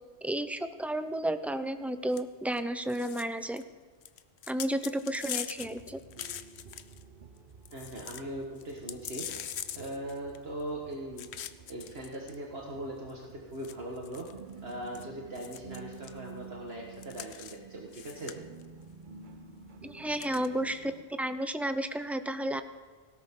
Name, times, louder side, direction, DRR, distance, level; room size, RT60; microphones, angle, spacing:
voice 1, 0.2-3.6 4.5-6.0 19.8-20.9 21.2-22.6, right 1 dB, ahead, 10 dB, 0.4 m, -32 dB
sound 1, 2.1-2.2 2.5-2.6 2.9-3.6 4.0-7.0 7.4-7.5 7.7-8.2 8.6-10.6 11.2-12.4 13.1-13.2 13.6-15.0 15.4-16.2 17.0-17.6 17.9-18.6 20.1-20.5, left 9 dB, 75° left, 0.9 m, -42 dB
sound 2, 5.6-21.0, right 5 dB, 50° right, 0.9 m, -51 dB
voice 2, 7.7-9.3 9.7-11.3 11.7-14.3 14.6-18.4, right 1 dB, 65° right, -1 dB, 1.9 m, -40 dB
18.5 x 17.0 x 3.8 m, 1.5 s
omnidirectional pair, 1.1 m